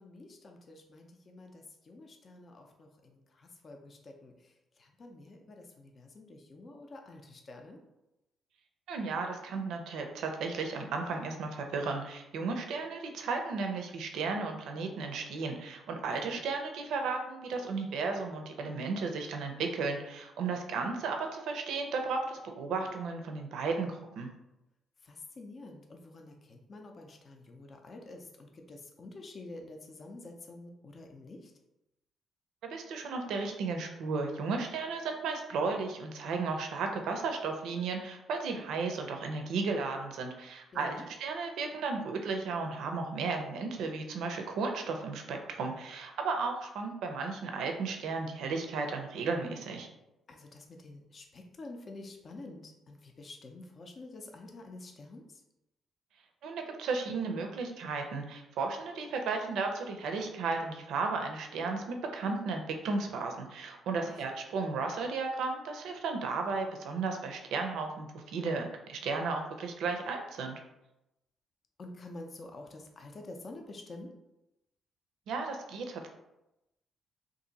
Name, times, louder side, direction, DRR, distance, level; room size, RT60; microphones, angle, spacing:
voice 1, 0.0-7.8 16.2-16.4 25.0-31.5 40.7-41.1 50.3-55.4 64.0-64.2 71.8-74.1, left 2 dB, 45° left, 3 dB, 0.5 m, -48 dB
voice 2, 8.9-24.3 32.6-49.9 56.4-70.6 75.3-76.1, right 4 dB, 80° right, 4 dB, 0.5 m, -34 dB
2.7 x 2.5 x 3.9 m, 0.91 s
cardioid pair, 90°, 0 cm